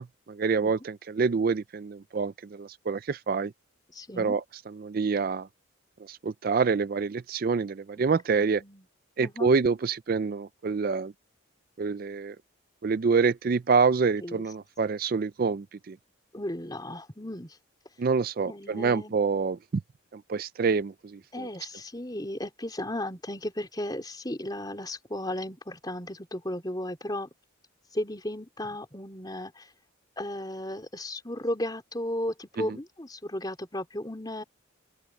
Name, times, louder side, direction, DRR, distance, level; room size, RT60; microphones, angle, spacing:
voice 1, 0.0-3.5 4.2-4.4 4.8-5.5 6.0-8.6 9.2-11.1 11.8-12.4 12.8-16.0 18.0-19.6 20.1-21.5 32.6-32.7, right 5 dB, 45° right, 0.4 m, -27 dB
voice 2, 3.9-4.4 8.4-8.9 9.2-9.5 14.2-14.4 16.3-17.6 18.5-19.2 21.3-27.3 27.9-29.7 30.2-34.4, left 1 dB, 20° left, 3.6 m, -35 dB
open air
head